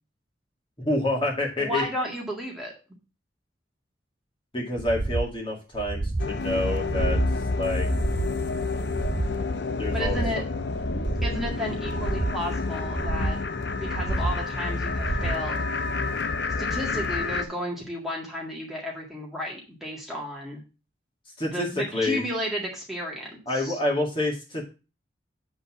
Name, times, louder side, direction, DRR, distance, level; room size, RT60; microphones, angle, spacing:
voice 1, 0.8-1.8 4.5-7.2 7.6-7.9 9.8-10.2 21.4-22.2 23.5-24.6, left 1 dB, 30° left, -1 dB, 2.0 m, -27 dB
voice 2, 1.6-2.7 9.9-10.4 11.2-13.4 13.7-15.7 16.6-20.6 21.5-23.8, equal, ahead, -4 dB, 1.9 m, -33 dB
sound 1, 4.8-5.3 5.7-6.3 6.8-7.3 7.8-8.4 8.8-9.4 9.8-10.4 10.8-11.4 11.8-12.4 12.8-13.4 13.8-14.4 14.8-15.4 15.8-15.9, right 2 dB, 30° right, 0.4 m, -29 dB
sound 2, 6.2-17.4, left 3 dB, 65° left, 0.6 m, -29 dB
8.1 x 3.9 x 5.9 m, 0.32 s
head